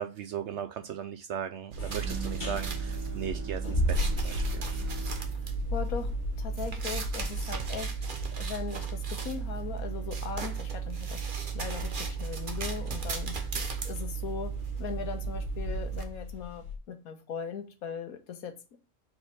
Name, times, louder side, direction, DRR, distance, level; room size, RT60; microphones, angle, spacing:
voice 1, 0.0-4.6, right 8 dB, 65° right, 0.7 m, -37 dB
sound 1, 1.7-16.0, right 6 dB, 40° right, 1.0 m, -35 dB
sound 2, 1.8-16.8, left 2 dB, 35° left, 1.6 m, -37 dB
Bowed string instrument, 2.0-7.4, right 5 dB, 10° right, 1.0 m, -46 dB
voice 2, 5.4-7.9 8.4-11.2 11.5-14.5 14.8-18.5, left 6 dB, 75° left, 1.4 m, -39 dB
4.6 x 4.3 x 5.2 m
omnidirectional pair, 1.5 m